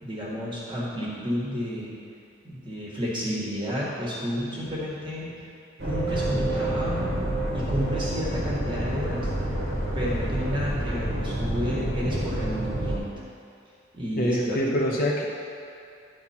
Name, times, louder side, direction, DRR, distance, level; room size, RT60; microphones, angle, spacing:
voice 1, 0.0-1.9 2.4-5.4 5.8-7.2 7.5-9.3 9.9-13.1 13.9-14.6, equal, 25° right, -6 dB, 1.5 m, -31 dB
sound 1, 5.8-13.0, right 1 dB, 50° right, 1.4 m, -28 dB
voice 2, 14.2-15.2, equal, 45° left, -2 dB, 0.8 m, -24 dB
10.5 x 4.3 x 4.4 m, 2.5 s
head